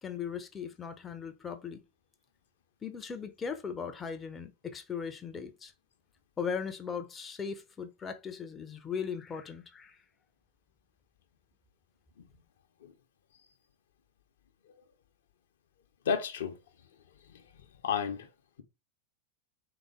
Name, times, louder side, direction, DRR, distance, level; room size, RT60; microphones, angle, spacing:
voice 1, 0.0-1.8 2.8-5.7 6.4-10.0, left 6 dB, 20° left, 0.6 m, -38 dB
voice 2, 16.1-16.5 17.8-18.3, left 6 dB, 60° left, 0.7 m, -31 dB
4.0 x 3.7 x 3.4 m
figure-of-eight pair, 90°, 0 cm